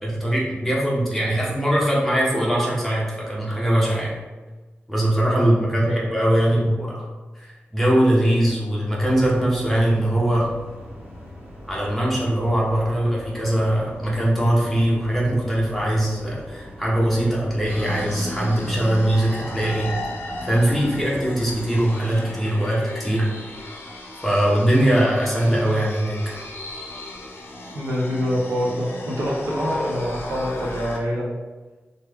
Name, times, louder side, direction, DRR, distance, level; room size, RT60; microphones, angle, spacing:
voice 1, 0.0-4.1 4.9-7.1 7.4-10.5 11.7-19.9 20.4-23.3 24.2-26.2, right 1 dB, 5° left, -5 dB, 0.8 m, -21 dB
voice 2, 5.3-6.1 27.7-31.3, equal, 85° right, -5 dB, 0.6 m, -25 dB
sound 1, 8.9-21.8, left 1 dB, 65° right, 1.1 m, -41 dB
sound 2, 17.7-31.0, left 1 dB, 65° left, 0.5 m, -35 dB
3.1 x 2.2 x 3.3 m, 1.3 s
wide cardioid pair, 115°, 4 cm